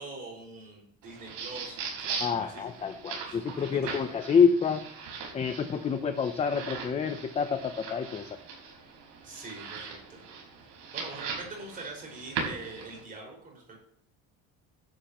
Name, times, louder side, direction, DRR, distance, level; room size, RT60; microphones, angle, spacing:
voice 1, 0.0-2.1 2.4-2.7 3.3-3.4 3.7-4.1 9.2-10.2 10.9-13.8, right 3 dB, 25° right, -1 dB, 5.4 m, -43 dB
sound 1, 1.0-13.0, right 5 dB, 75° right, 5.0 m, -40 dB
voice 2, 2.2-4.8 5.3-8.3, left 6 dB, 20° left, 7 dB, 0.6 m, -27 dB
16.0 x 11.5 x 3.0 m, 0.68 s
cardioid pair, 170°, 31 cm